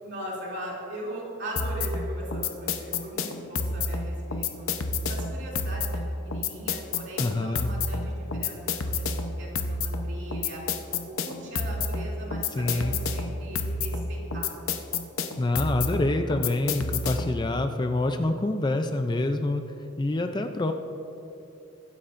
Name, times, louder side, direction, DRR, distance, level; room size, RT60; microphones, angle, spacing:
voice 1, 0.0-4.7 5.1-8.5 8.8-10.6 11.1-14.5, equal, 55° right, -4 dB, 2.8 m, -39 dB
sound 1, 1.6-17.4, left 3 dB, 75° left, 0.8 m, -30 dB
voice 2, 7.2-7.7 12.6-12.9 15.4-19.6 20.0-20.7, left 2 dB, 20° left, 6 dB, 0.4 m, -26 dB
22.0 x 9.9 x 2.6 m, 2.9 s
head